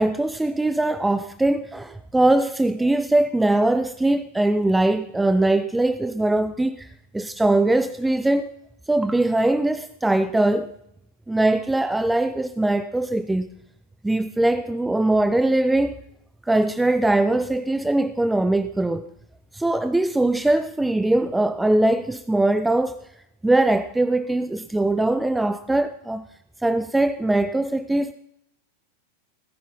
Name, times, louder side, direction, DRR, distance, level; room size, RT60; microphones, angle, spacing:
voice 1, 0.0-6.9 7.1-8.5 8.9-10.7 11.3-13.5 14.0-15.9 16.5-19.1 19.5-23.0 23.4-26.2 26.6-28.1, right 2 dB, 5° right, 12 dB, 0.5 m, -21 dB
17.5 x 10.5 x 5.3 m, 0.78 s
figure-of-eight pair, 90°, 0 cm